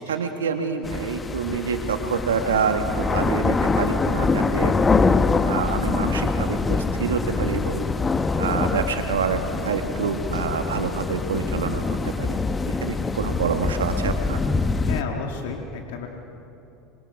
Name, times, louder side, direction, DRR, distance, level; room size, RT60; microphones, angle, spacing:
voice 1, 0.0-4.7 5.4-7.9 8.4-12.4 12.7-14.4, right 5 dB, 85° right, 6 dB, 1.8 m, -27 dB
sound 1, 0.8-15.0, left 4 dB, 25° left, 1.0 m, -24 dB
voice 2, 14.8-16.1, left 5 dB, 75° left, 2 dB, 1.8 m, -32 dB
26.5 x 22.5 x 4.9 m, 2.7 s
hypercardioid pair, 80°, 0 cm